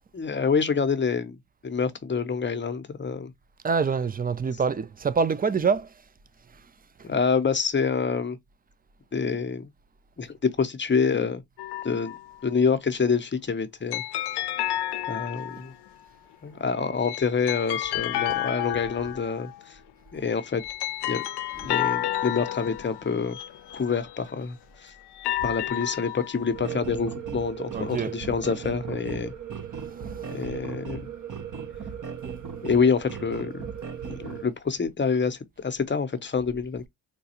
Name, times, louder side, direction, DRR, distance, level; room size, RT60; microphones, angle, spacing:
voice 1, 0.1-1.4 1.6-3.3 7.0-8.4 9.1-9.7 10.2-11.4 11.8-12.2 12.4-14.0 15.1-15.7 16.4-19.8 20.1-20.6 21.1-21.2 21.5-23.4 23.7-24.9 25.4-29.3 30.3-31.1 32.6-33.6 34.0-36.9, left 5 dB, 25° left, 0.7 m, -27 dB
voice 2, 3.6-5.9 6.5-6.7 7.0-7.1 27.7-28.2 29.9-30.4, right 5 dB, 20° right, 0.4 m, -26 dB
sound 1, 11.6-12.3 13.9-15.9 16.8-19.6 20.3-24.4 25.0-26.6, left 13 dB, 65° left, 0.5 m, -31 dB
sound 2, 26.5-34.4, right 7 dB, 45° right, 0.8 m, -36 dB
4.0 x 2.3 x 2.8 m
cardioid pair, 70°, 44 cm